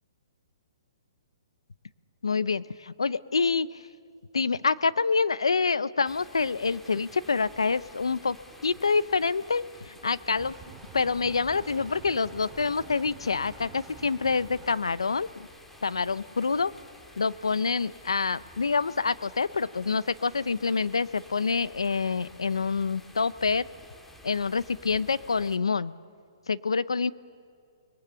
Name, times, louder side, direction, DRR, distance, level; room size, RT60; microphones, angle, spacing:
voice 1, 2.2-3.8 4.3-8.4 8.6-10.5 10.9-15.5 15.8-16.7 17.2-23.7 24.2-25.9 26.5-27.1, left 4 dB, 90° left, 17 dB, 0.6 m, -27 dB
sound 1, 6.0-25.6, left 1 dB, 5° left, 1.9 m, -52 dB
sound 2, 10.4-14.8, right 4 dB, 10° right, 2.3 m, -48 dB
30.0 x 21.0 x 7.1 m, 2.3 s
hypercardioid pair, 135°, 3 cm